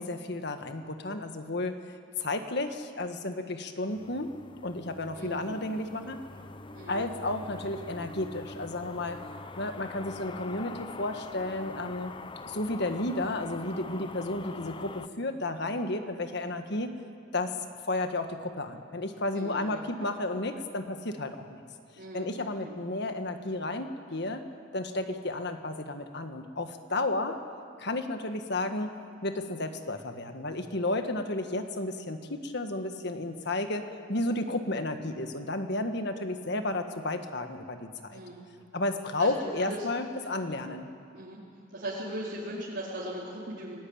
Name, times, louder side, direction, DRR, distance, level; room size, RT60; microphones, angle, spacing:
voice 1, 0.0-1.8 2.2-4.3 4.6-6.2 6.9-9.2 9.6-12.1 12.5-16.9 17.3-17.6 17.9-21.6 22.1-24.4 24.7-27.4 27.8-28.9 29.2-38.2 38.7-40.9, left 2 dB, 55° left, 7 dB, 1.6 m, -32 dB
sound 1, 3.9-15.1, left 3 dB, 25° left, 0.7 m, -44 dB
voice 2, 6.7-7.1 19.3-20.1 22.0-22.7 38.1-38.4 39.2-39.8 40.2-40.7 41.1-41.4 41.7-43.8, right 1 dB, 60° right, -7 dB, 4.0 m, -39 dB
29.0 x 19.0 x 8.8 m, 2.4 s
head